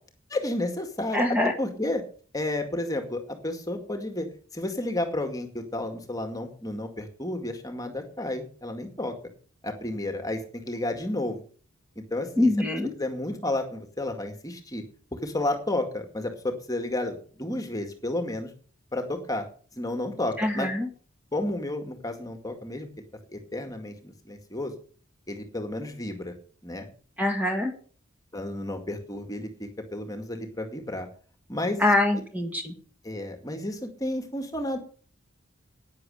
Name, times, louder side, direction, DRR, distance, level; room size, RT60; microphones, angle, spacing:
voice 1, 0.3-2.0 2.3-4.3 4.5-9.1 9.6-11.4 12.0-12.5 13.0-14.8 15.1-18.5 18.9-19.5 19.7-20.7 21.3-22.9 23.3-24.7 25.3-26.3 26.6-26.9 28.3-31.1 31.5-31.9 33.0-34.8, left 1 dB, 15° left, 6 dB, 2.1 m, -31 dB
voice 2, 1.1-1.5 12.4-12.9 20.4-20.9 27.2-27.7 31.8-32.7, left 1 dB, 10° right, 3 dB, 1.9 m, -24 dB
11.5 x 9.7 x 6.5 m, 0.42 s
head